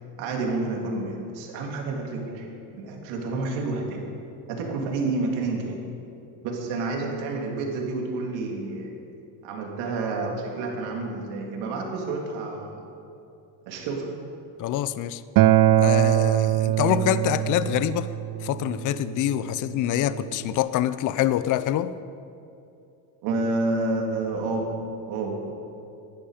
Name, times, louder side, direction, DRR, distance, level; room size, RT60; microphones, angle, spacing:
voice 1, 0.2-4.1 4.5-5.8 6.4-8.9 9.4-12.9 13.6-14.2 23.2-24.7 25.1-25.5, right 3 dB, 75° right, 0 dB, 3.3 m, -29 dB
voice 2, 14.6-15.2 15.8-18.1 18.4-21.9, left 12 dB, 45° left, 14 dB, 0.6 m, -25 dB
Acoustic guitar, 15.4-20.6, right 14 dB, 50° right, 0.6 m, -23 dB
20.0 x 11.5 x 5.1 m, 2.7 s
supercardioid pair, 110°, 45 cm